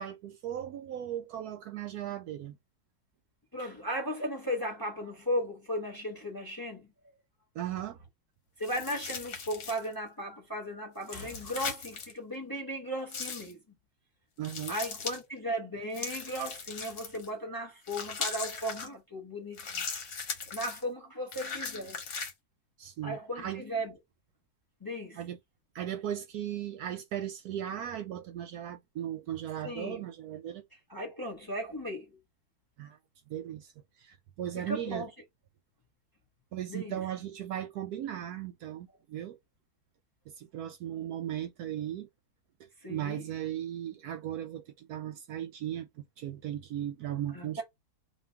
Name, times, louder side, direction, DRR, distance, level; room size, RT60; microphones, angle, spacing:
voice 1, 0.0-2.6 7.5-8.0 14.4-14.8 22.8-23.6 25.2-25.4 25.7-30.6 32.8-33.0 33.3-33.7 34.0-35.0 36.5-39.4 40.3-42.1 42.6-47.6, right 11 dB, 70° right, 1.0 m, -37 dB
voice 2, 3.5-6.9 8.6-13.6 14.7-20.1 20.5-22.0 23.0-23.9 24.8-25.2 29.6-30.0 30.9-32.2 34.5-35.1 36.7-37.0 42.8-43.2 47.3-47.6, equal, 15° left, 0.9 m, -36 dB
sound 1, 8.6-9.9 11.0-12.1 13.1-13.5 14.4-15.2 15.9-17.3 17.9-18.9 19.5-20.8 21.3-22.3, left 5 dB, 75° left, 1.7 m, -38 dB
3.1 x 2.6 x 4.4 m
omnidirectional pair, 1.8 m